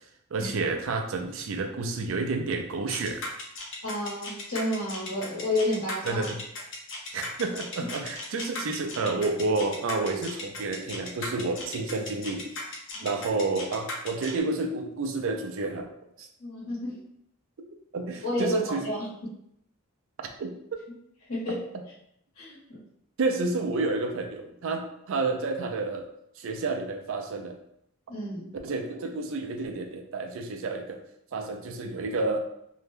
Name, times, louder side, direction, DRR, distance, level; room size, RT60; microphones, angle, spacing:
voice 1, 0.3-3.2 6.0-6.4 7.1-12.7 13.0-15.9 16.2-16.3 17.9-18.8 20.4-20.5 21.5-21.6 23.2-26.1 26.4-27.6 28.6-31.0 31.3-32.4, right 3 dB, 60° right, 4 dB, 0.4 m, -30 dB
sound 1, 2.9-14.4, left 2 dB, 60° left, 0.6 m, -37 dB
voice 2, 3.8-6.3 12.9-13.2 16.4-17.1 18.2-19.1 21.3-21.6 22.4-22.8 28.1-28.5, left 1 dB, 75° left, -6 dB, 1.3 m, -31 dB
2.7 x 2.2 x 3.3 m, 0.75 s
head